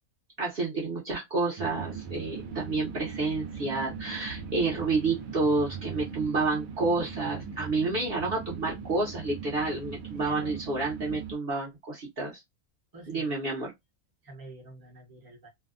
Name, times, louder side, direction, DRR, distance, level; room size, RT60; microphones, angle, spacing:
voice 1, 0.4-12.4 13.1-13.7, right 3 dB, 50° right, 0.9 m, -29 dB
sound 1, 1.6-11.3, right 7 dB, 75° right, 1.0 m, -40 dB
voice 2, 10.1-10.6 12.9-13.4 14.2-15.5, right 2 dB, 20° right, 0.7 m, -47 dB
2.7 x 2.2 x 2.4 m
omnidirectional pair, 1.5 m